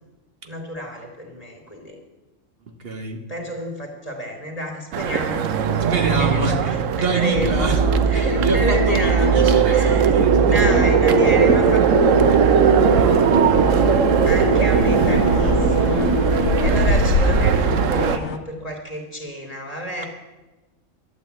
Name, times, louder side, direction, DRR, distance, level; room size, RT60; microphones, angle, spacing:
voice 1, 0.4-2.0 3.3-7.7 8.1-11.8 14.3-20.0, equal, 30° left, 0 dB, 2.9 m, -30 dB
voice 2, 2.7-3.2 5.9-7.8 8.1-11.6 16.8-16.9, right 3 dB, 50° right, 5 dB, 1.6 m, -27 dB
sound 1, 4.9-18.2, right 7 dB, 75° right, 1.1 m, -19 dB
sound 2, 7.3-17.0, right 3 dB, 25° right, 1.0 m, -21 dB
sound 3, 11.1-18.4, left 4 dB, 65° left, 1.2 m, -27 dB
12.5 x 10.0 x 8.2 m, 1.1 s
omnidirectional pair, 1.3 m